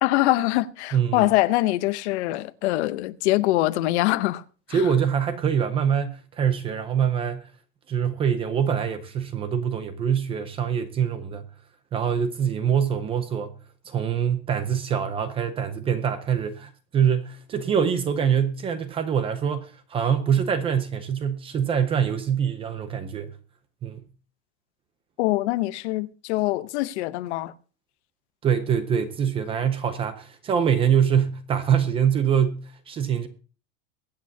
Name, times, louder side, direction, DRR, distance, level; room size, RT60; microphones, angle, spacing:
voice 1, 0.0-4.4 4.7-4.8 25.2-27.5, left 17 dB, 55° left, 0.8 m, -23 dB
voice 2, 0.9-1.3 4.7-7.5 7.9-11.5 11.9-13.5 13.8-23.3 23.8-24.0 28.4-33.3, right 8 dB, 15° right, 0.5 m, -24 dB
23.0 x 8.6 x 2.7 m
supercardioid pair, 170°, 41 cm